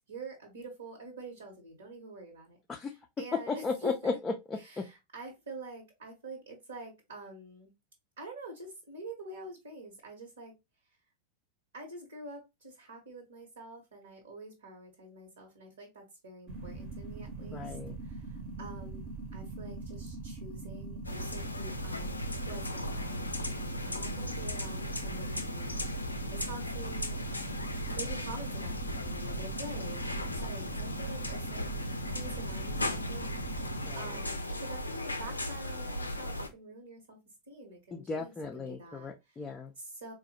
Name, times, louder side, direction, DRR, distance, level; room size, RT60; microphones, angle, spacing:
voice 1, 0.1-3.9 4.6-7.7 8.2-10.5 11.7-17.8 18.0-25.8 26.3-27.2 27.9-31.7 32.1-33.2 33.9-37.2 37.5-39.4 39.8-40.1, right 2 dB, 70° right, 1.0 m, -47 dB
voice 2, 3.5-4.8 17.5-17.9 33.8-34.2 37.9-39.7, left 4 dB, 15° left, 0.4 m, -35 dB
sound 1, 16.5-33.9, right 3 dB, 40° right, 0.8 m, -42 dB
sound 2, 21.0-36.5, left 1 dB, 85° left, 0.4 m, -37 dB
3.9 x 2.1 x 2.7 m
figure-of-eight pair, 90°, 0 cm